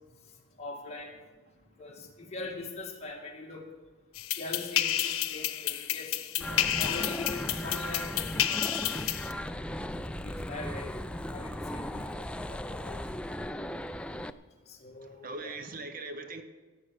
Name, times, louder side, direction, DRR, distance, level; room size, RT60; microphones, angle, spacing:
voice 1, 0.6-1.2 1.8-3.7 4.4-9.4 10.2-10.9 11.3-13.1 14.7-15.6, left 3 dB, 30° left, 0 dB, 2.3 m, -42 dB
sound 1, 4.1-9.3, left 11 dB, 85° left, 0.9 m, -31 dB
sound 2, 6.4-14.3, left 1 dB, 5° left, 0.3 m, -37 dB
voice 2, 15.0-16.4, right 3 dB, 45° right, 9 dB, 0.9 m, -41 dB
17.0 x 8.4 x 6.5 m, 1.3 s
head